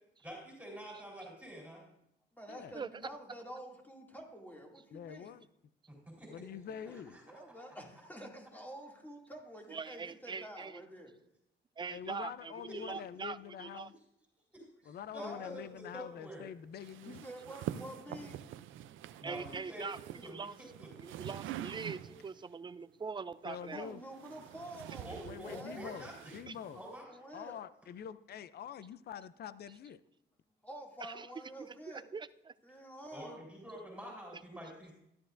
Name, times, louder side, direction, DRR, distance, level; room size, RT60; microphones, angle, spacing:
voice 1, 0.2-1.8 5.9-6.4 6.9-7.6 12.7-12.8 14.5-16.4 17.7-18.3 19.2-19.9 20.1-21.0 25.0-26.4 26.7-27.2 33.1-34.9, equal, 5° right, -2 dB, 4.1 m, -48 dB
voice 2, 2.4-5.3 6.8-11.1 15.2-15.5 17.0-18.4 23.7-25.8 27.1-27.6 30.6-32.0 32.6-33.4, right 1 dB, 10° left, -1 dB, 2.5 m, -48 dB
voice 3, 4.9-5.5 6.3-7.2 11.9-13.9 14.8-17.2 23.4-24.0 25.2-26.8 27.3-30.0, left 8 dB, 55° left, 15 dB, 0.5 m, -46 dB
voice 4, 9.7-10.8 11.8-13.9 19.2-20.6 21.0-24.0 26.5-26.6 31.0-31.3 31.6-32.5, right 5 dB, 25° right, 15 dB, 0.4 m, -43 dB
sound 1, 16.8-22.4 23.5-27.0, right 12 dB, 80° right, 0.5 m, -46 dB
13.5 x 12.0 x 2.6 m, 0.79 s
cardioid pair, 90°, 20 cm